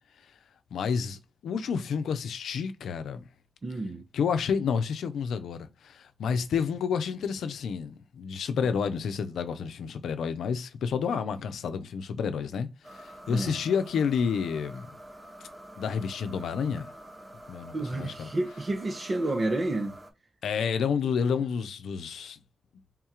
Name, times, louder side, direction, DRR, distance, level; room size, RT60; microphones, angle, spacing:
voice 1, 0.7-3.3 4.1-15.0 15.8-16.9 17.5-18.3 20.4-22.4, left 6 dB, 90° left, 0.5 m, -30 dB
voice 2, 3.6-4.0 13.3-13.6 17.7-20.0, right 2 dB, 50° right, 0.9 m, -30 dB
sound 1, 12.8-20.1, right 1 dB, 15° right, 1.1 m, -47 dB
3.7 x 2.4 x 4.3 m
cardioid pair, 55°, 0 cm